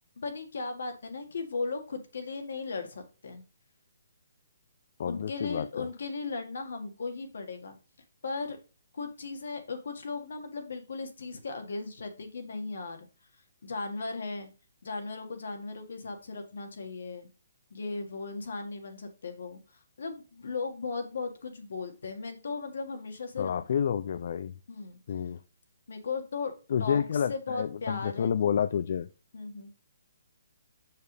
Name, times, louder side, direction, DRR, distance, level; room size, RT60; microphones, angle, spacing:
voice 1, 0.2-3.4 5.0-7.8 8.2-8.6 8.9-13.1 13.6-14.5 14.8-17.3 17.7-19.6 20.0-23.6 24.7-25.0 25.9-28.3 29.3-29.7, left 4 dB, 65° left, 1.8 m, -37 dB
voice 2, 5.0-5.9 23.4-24.5 25.1-25.4 26.7-29.1, left 8 dB, 45° left, 0.3 m, -29 dB
6.8 x 6.6 x 3.3 m
hypercardioid pair, 170°, 0 cm